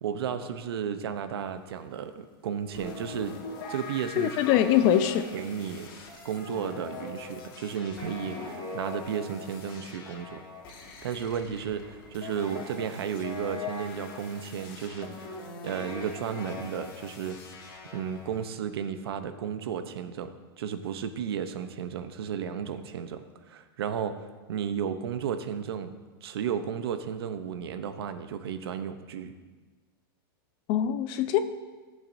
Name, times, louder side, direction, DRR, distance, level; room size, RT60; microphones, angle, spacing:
voice 1, 0.0-3.3 3.7-4.3 5.3-5.9 6.2-10.4 11.0-15.3 15.6-17.4 17.9-20.3 20.6-24.1 24.5-25.9 26.2-29.3, right 8 dB, 80° right, 9 dB, 0.8 m, -33 dB
sound 1, 2.7-18.4, left 4 dB, 60° left, 1.8 m, -42 dB
voice 2, 4.2-5.3 30.7-31.4, left 11 dB, 45° left, 11 dB, 0.6 m, -23 dB
14.0 x 7.5 x 2.7 m, 1.3 s
supercardioid pair, 135°, 13 cm